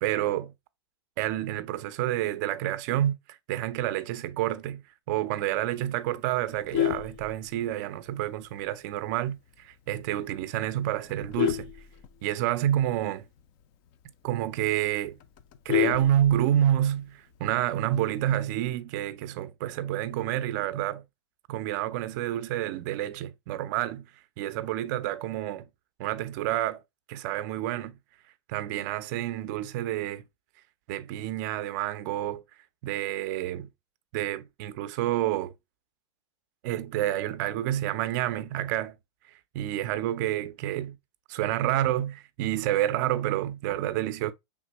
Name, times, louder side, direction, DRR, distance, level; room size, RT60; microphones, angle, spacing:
voice 1, 0.0-0.5 1.2-4.8 5.1-9.4 9.6-11.7 12.2-13.2 14.2-15.2 15.7-21.0 21.5-24.1 24.4-25.7 26.0-26.8 27.1-28.0 28.5-30.2 30.9-32.4 32.8-33.7 34.1-35.5 36.6-38.9 39.5-41.0 41.3-44.3, right 12 dB, 40° right, 0.4 m, -29 dB
Vehicle horn car horn honking, 6.5-7.9 8.4-8.7 9.0-9.1 9.5-9.6 9.9-10.2 10.8-12.6 13.0-13.1 13.4-13.5 13.9-14.0 14.3-14.4 14.7-16.7 17.9-18.4, left 12 dB, 35° left, 0.4 m, -30 dB
5.0 x 3.5 x 2.9 m
supercardioid pair, 155°, 14 cm